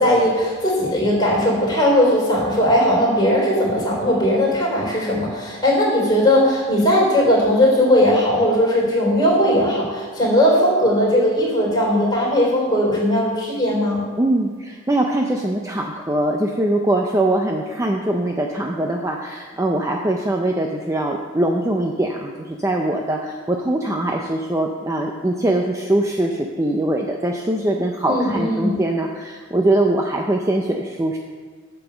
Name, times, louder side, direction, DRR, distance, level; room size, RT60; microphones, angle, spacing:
voice 1, 0.0-14.0 28.0-28.8, left 1 dB, 20° left, -4 dB, 3.7 m, -18 dB
voice 2, 14.2-31.2, right 1 dB, 15° right, 1 dB, 0.5 m, -22 dB
9.0 x 6.9 x 7.1 m, 1.5 s
head